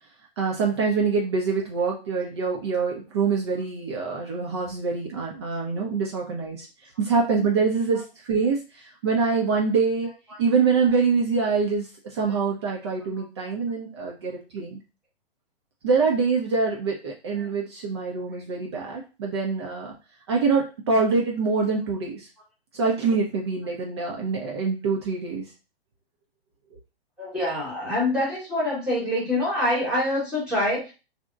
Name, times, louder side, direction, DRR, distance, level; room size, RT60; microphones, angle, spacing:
voice 1, 0.4-6.7 7.0-10.1 10.4-14.8 15.8-19.9 20.3-22.3 22.7-25.5, right 4 dB, 25° right, -2 dB, 0.4 m, -25 dB
voice 2, 27.2-30.9, left 1 dB, 5° right, -8 dB, 0.9 m, -25 dB
2.7 x 2.0 x 2.3 m, 0.31 s
figure-of-eight pair, 115°, 31 cm